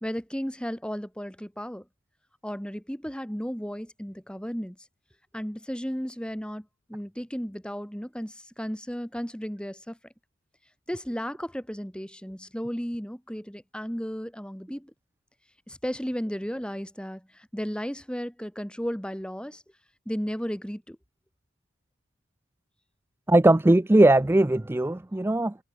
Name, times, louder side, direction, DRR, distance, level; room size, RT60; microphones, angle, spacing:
voice 1, 0.0-1.8 2.4-4.8 5.3-6.6 6.9-10.0 10.9-14.9 15.7-17.2 17.5-19.6 20.1-21.0, equal, 5° left, 2.0 m, -34 dB
voice 2, 23.3-25.6, right 1 dB, 10° right, 0.4 m, -19 dB
head